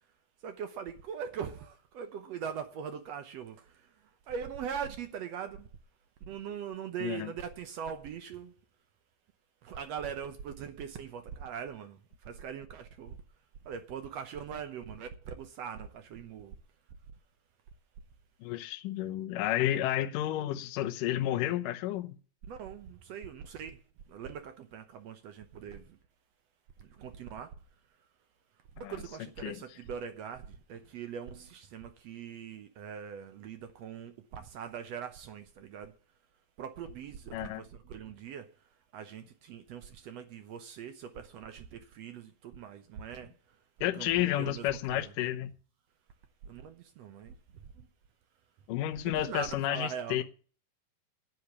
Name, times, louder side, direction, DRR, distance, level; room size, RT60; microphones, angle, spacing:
voice 1, 0.4-3.9 4.3-5.7 6.2-8.5 9.6-13.2 13.6-16.6 22.5-23.8 24.1-26.0 26.8-27.5 28.8-35.9 36.6-38.5 38.9-43.3 44.0-45.1 46.4-47.3 47.7-47.9 48.9-50.2, right 7 dB, 75° right, 1.5 m, -41 dB
voice 2, 7.0-7.3 18.4-22.2 28.8-29.0 29.4-29.6 37.3-37.6 43.8-45.5 48.7-50.2, left 13 dB, 75° left, 2.3 m, -31 dB
10.5 x 8.0 x 8.2 m
omnidirectional pair, 4.2 m